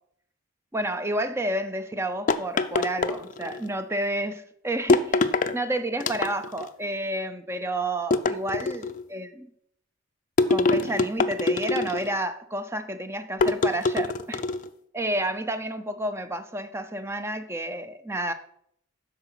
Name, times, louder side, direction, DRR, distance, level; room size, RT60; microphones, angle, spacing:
voice 1, 0.7-9.5 10.5-14.4 14.9-18.3, right 1 dB, 10° right, 10 dB, 0.6 m, -30 dB
sound 1, 2.3-3.7 4.9-5.6 6.0-6.7 8.1-9.0 10.4-12.2 13.4-14.7, left 3 dB, 35° left, 0.5 m, -24 dB
12.5 x 4.9 x 5.7 m, 0.70 s
head